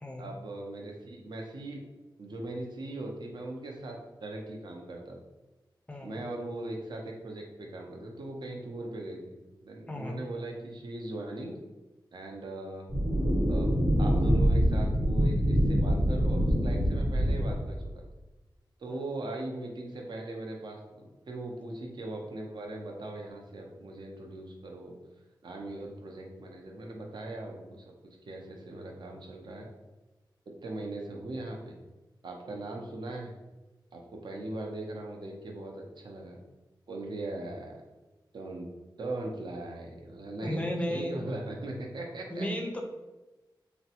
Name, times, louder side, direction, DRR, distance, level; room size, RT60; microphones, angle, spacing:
voice 1, 0.2-1.8 2.2-5.2 6.0-11.5 12.1-12.9 13.5-18.0 18.8-24.9 25.4-27.9 28.3-29.7 30.6-31.8 32.2-33.3 33.9-36.4 36.9-37.8 38.3-38.7 39.0-42.5, right 2 dB, 60° right, 0 dB, 0.5 m, -39 dB
voice 2, 9.9-10.2 18.9-19.0 40.4-41.1 42.3-42.8, equal, 15° left, 2 dB, 0.3 m, -34 dB
sound 1, 12.9-17.9, equal, 85° right, 1.1 m, -25 dB
3.3 x 2.0 x 2.8 m, 1.1 s
wide cardioid pair, 110°, 8 cm